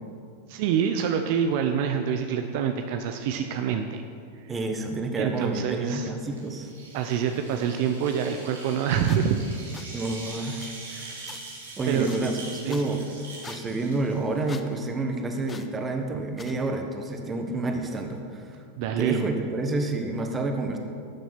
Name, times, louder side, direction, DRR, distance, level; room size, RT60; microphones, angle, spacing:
voice 1, 0.5-4.0 5.2-6.1 6.9-9.4 11.9-12.1 12.6-12.9 18.8-19.2, right 8 dB, 60° right, 6 dB, 0.7 m, -26 dB
voice 2, 4.5-6.7 9.9-10.6 10.9-11.2 11.8-18.6 19.0-20.8, right 2 dB, 20° right, 4 dB, 1.5 m, -29 dB
sound 1, 6.3-14.7, right 3 dB, 90° right, 3.3 m, -43 dB
sound 2, 9.1-9.2 9.7-9.9 10.6-10.7 11.3-11.4 12.0-12.2 12.7-12.8 13.4-13.6 14.5-14.7 15.5-15.7 16.4-16.5, left 5 dB, 20° left, 0.7 m, -43 dB
12.0 x 7.2 x 6.1 m, 2.3 s
hypercardioid pair, 105°, 0 cm